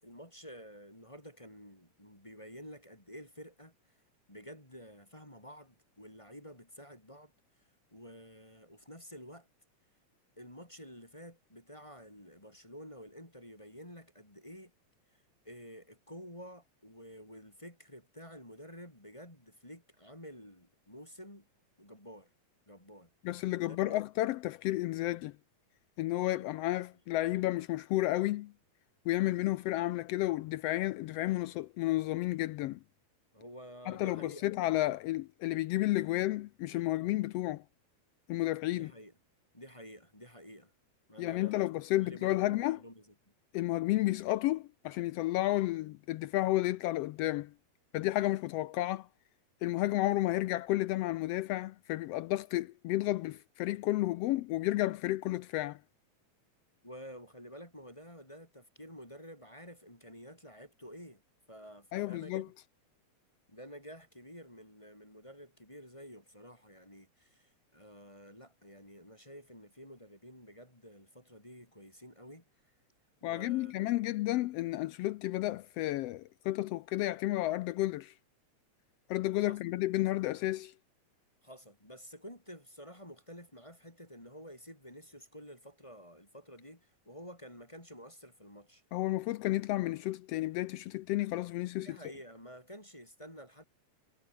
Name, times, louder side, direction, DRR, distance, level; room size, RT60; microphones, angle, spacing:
voice 1, 0.0-3.7 4.3-7.3 7.9-9.5 10.4-14.7 15.1-21.5 21.8-22.3 22.7-23.1 23.6-24.0 26.4-26.5 33.3-34.7 38.7-39.1 39.5-40.7 41.1-43.3 56.8-61.2 61.5-62.5 63.5-72.4 73.2-73.8 79.4-79.7 81.4-88.8 91.7-93.6, equal, 10° left, 3.4 m, -51 dB
voice 2, 23.2-25.3 26.0-28.5 29.1-32.8 33.9-37.6 38.3-38.9 41.2-42.8 43.5-47.5 47.9-49.1 49.6-55.8 61.9-62.5 73.2-78.1 79.1-80.7 88.9-92.0, left 16 dB, 85° left, 1.4 m, -32 dB
omnidirectional pair, 3.3 m